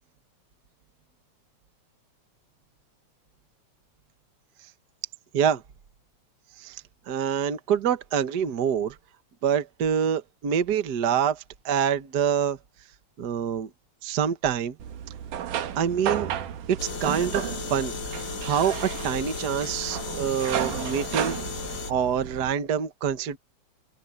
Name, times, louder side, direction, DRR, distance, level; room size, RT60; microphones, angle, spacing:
voice 1, 6.6-9.0 9.4-12.6 13.2-13.7 14.0-14.8 15.7-16.3 16.7-18.0 18.2-21.4 21.9-23.4, right 8 dB, 50° right, 1.2 m, -26 dB
sound 1, 14.8-22.5, right 9 dB, 85° right, 2.9 m, -33 dB
sound 2, 16.8-21.9, left 6 dB, 40° left, 2.1 m, -35 dB
open air
omnidirectional pair, 3.5 m